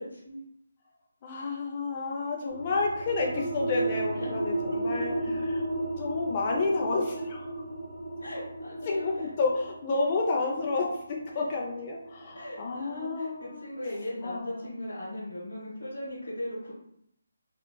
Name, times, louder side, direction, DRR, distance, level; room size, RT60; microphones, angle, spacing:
voice 1, 0.1-0.4 4.2-4.4 8.2-9.3 11.3-11.4 12.3-16.7, left 1 dB, 85° left, -8 dB, 1.3 m, -38 dB
voice 2, 1.2-5.1 6.0-7.6 8.9-13.7 14.2-14.7, left 3 dB, 35° left, -1 dB, 0.4 m, -30 dB
sound 1, 2.5-13.7, right 2 dB, 55° right, 1.4 m, -35 dB
3.8 x 2.3 x 2.2 m, 0.73 s
figure-of-eight pair, 155°, 0 cm